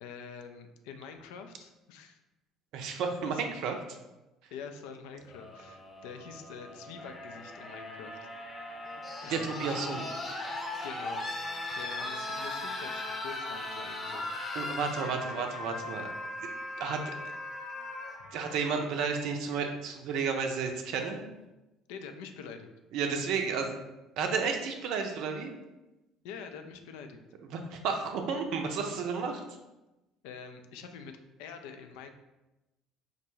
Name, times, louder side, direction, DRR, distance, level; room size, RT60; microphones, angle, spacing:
voice 1, 0.0-2.2 3.3-3.4 4.5-8.3 9.2-10.0 10.8-11.3 11.7-14.3 15.0-15.4 18.2-18.3 21.9-22.7 26.2-27.2 30.2-32.1, left 6 dB, 65° left, 6 dB, 0.3 m, -45 dB
voice 2, 2.7-3.8 9.3-10.0 14.5-16.1 16.8-17.1 18.3-21.3 22.9-23.8 24.2-25.5 27.5-29.4, right 5 dB, 60° right, 4 dB, 0.5 m, -32 dB
sound 1, 5.3-19.2 20.5-20.6, left 2 dB, 35° left, 0.8 m, -39 dB
5.1 x 2.2 x 3.0 m, 1.0 s
figure-of-eight pair, 55°, 0 cm